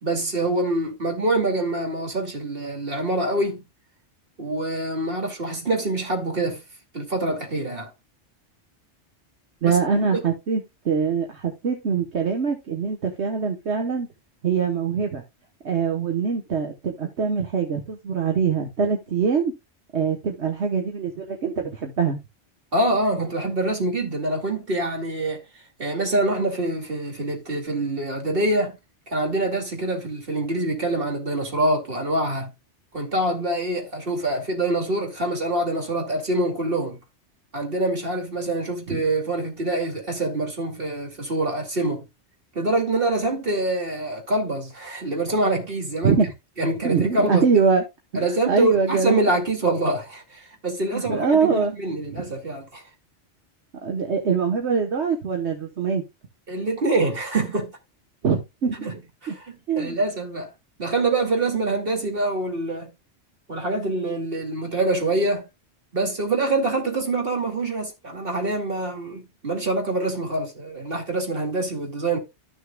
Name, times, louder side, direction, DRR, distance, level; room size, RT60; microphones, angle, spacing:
voice 1, 0.0-3.6 4.4-6.6 6.9-7.9 9.6-10.2 22.7-25.4 25.8-28.8 29.1-32.5 32.9-37.0 37.5-42.0 42.5-46.2 46.6-47.6 48.1-52.8 56.5-57.8 58.9-59.0 59.2-60.5 60.8-62.9 63.5-65.5 65.9-72.2, right 2 dB, 55° right, 2.6 m, -25 dB
voice 2, 9.6-14.1 14.4-15.2 15.6-19.5 19.9-22.2 46.0-46.3 46.8-47.8 48.1-49.3 50.9-51.7 52.1-52.2 53.8-56.0 58.2-58.9 59.3-59.4 59.7-60.0, right 5 dB, 70° right, 1.5 m, -23 dB
13.5 x 6.4 x 2.3 m
omnidirectional pair, 1.2 m